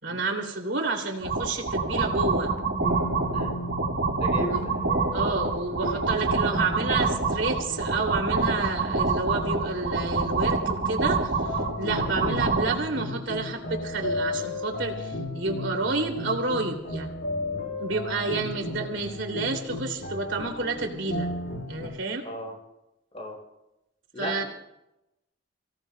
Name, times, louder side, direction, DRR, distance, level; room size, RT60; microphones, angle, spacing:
voice 1, 0.0-2.5 4.3-4.6 5.1-17.1 17.8-21.3 21.7-22.2 24.2-24.4, right 3 dB, 80° right, 2 dB, 2.7 m, -30 dB
sound 1, 1.2-12.8, right 3 dB, 65° right, 1.8 m, -26 dB
sound 2, 2.2-10.6 11.4-21.9, left 1 dB, 65° left, 5.3 m, -35 dB
voice 2, 4.2-4.7 12.0-12.2 18.3-18.5 22.2-22.6 23.1-23.4 24.1-24.4, left 2 dB, 35° left, 0 dB, 5.0 m, -36 dB
30.0 x 17.0 x 2.2 m, 0.89 s
head